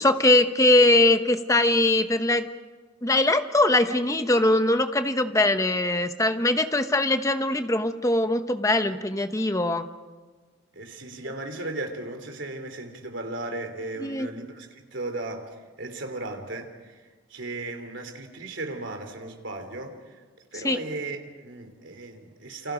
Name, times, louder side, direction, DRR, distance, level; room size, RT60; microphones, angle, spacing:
voice 1, 0.0-2.5 3.0-9.9 14.0-14.3 20.6-20.8, left 2 dB, 15° left, 9 dB, 0.9 m, -21 dB
voice 2, 10.7-20.2 20.5-22.7, right 2 dB, 75° right, 5 dB, 3.1 m, -36 dB
28.5 x 26.0 x 5.1 m, 1.4 s
head